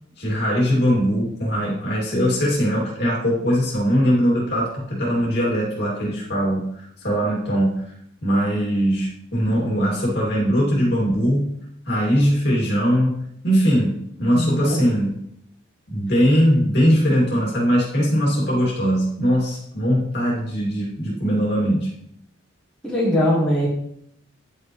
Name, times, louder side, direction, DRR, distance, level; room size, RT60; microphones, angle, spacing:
voice 1, 0.2-7.8 8.2-11.6 11.9-15.2 15.9-21.9, equal, 55° left, -4 dB, 2.4 m, -21 dB
voice 2, 14.3-14.8 22.8-23.7, equal, 5° left, -6 dB, 1.7 m, -20 dB
10.5 x 5.5 x 3.1 m, 0.72 s
head